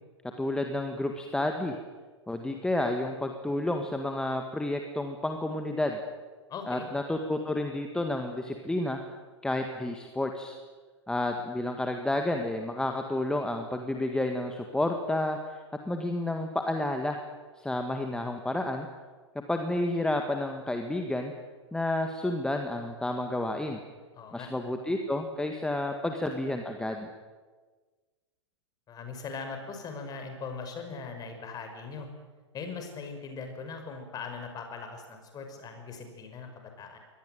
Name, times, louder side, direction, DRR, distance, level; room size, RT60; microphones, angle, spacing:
voice 1, 0.4-1.7 2.3-6.0 6.7-9.0 9.4-10.5 11.1-15.6 15.8-17.2 17.6-18.9 19.5-21.3 21.7-23.8 24.3-27.1, left 1 dB, 5° left, 4 dB, 1.8 m, -30 dB
voice 2, 6.5-6.9 24.1-24.5 28.9-32.1 32.5-37.0, left 5 dB, 25° left, 6 dB, 5.8 m, -40 dB
23.5 x 19.0 x 9.3 m, 1.4 s
figure-of-eight pair, 105°, 15 cm